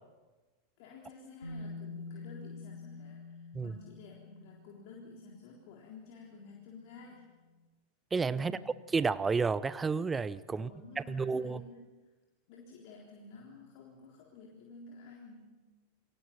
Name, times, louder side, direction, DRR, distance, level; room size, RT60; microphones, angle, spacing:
voice 1, 0.8-7.2 8.3-8.7 10.5-11.9 12.5-15.5, left 3 dB, 45° left, -2 dB, 3.8 m, -52 dB
Bass guitar, 1.4-5.4 6.5-6.6, left 3 dB, 80° left, 4.3 m, -46 dB
voice 2, 8.1-8.5 8.9-10.7 11.0-11.6, right 4 dB, 15° right, 18 dB, 0.8 m, -31 dB
29.0 x 23.0 x 5.9 m, 1.3 s
figure-of-eight pair, 90°, 0 cm